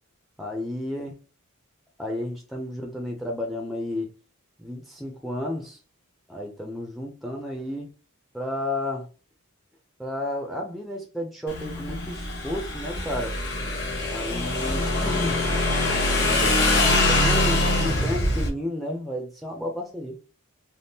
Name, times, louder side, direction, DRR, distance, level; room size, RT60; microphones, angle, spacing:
voice 1, 0.4-1.1 2.0-4.1 4.6-5.8 6.3-7.9 8.3-9.1 10.0-13.4 14.1-15.4 16.3-16.6 17.1-20.2, left 1 dB, ahead, 0.4 m, -32 dB
Motorcycle / Engine, 11.5-18.5, left 2 dB, 50° left, 1.0 m, -23 dB
3.5 x 2.2 x 2.7 m
head